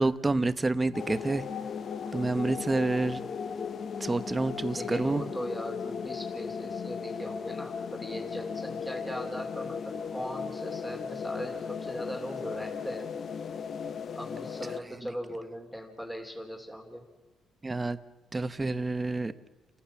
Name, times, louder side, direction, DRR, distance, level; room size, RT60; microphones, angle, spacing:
voice 1, 0.0-1.4 2.1-3.2 4.0-5.2 17.6-18.0 18.3-19.3, right 2 dB, 20° right, 12 dB, 1.0 m, -28 dB
sound 1, 0.9-14.8, left 6 dB, 50° left, 1.0 m, -36 dB
voice 2, 4.7-13.1 14.1-17.0, equal, 5° left, 2 dB, 3.0 m, -39 dB
29.0 x 15.0 x 7.2 m, 1.3 s
cardioid pair, 100°, 0 cm